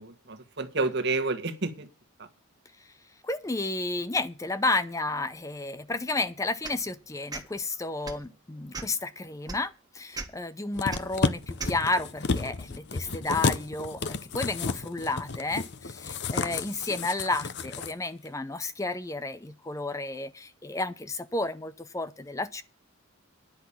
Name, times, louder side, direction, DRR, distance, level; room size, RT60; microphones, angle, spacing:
voice 1, 0.0-1.9 2.2-2.3 16.3-16.6, right 3 dB, 50° right, 1.6 m, -30 dB
voice 2, 3.2-22.6, left 2 dB, 15° left, 0.6 m, -32 dB
sound 1, 6.6-6.8 7.3-7.5 8.0-8.3 8.7-9.0 9.5-9.6 10.1-10.3 10.9-11.0 11.6-11.8, right 3 dB, 20° right, 1.5 m, -36 dB
sound 2, 10.7-17.9 18.3-18.4, left 4 dB, 50° left, 0.7 m, -31 dB
10.5 x 6.0 x 8.6 m
head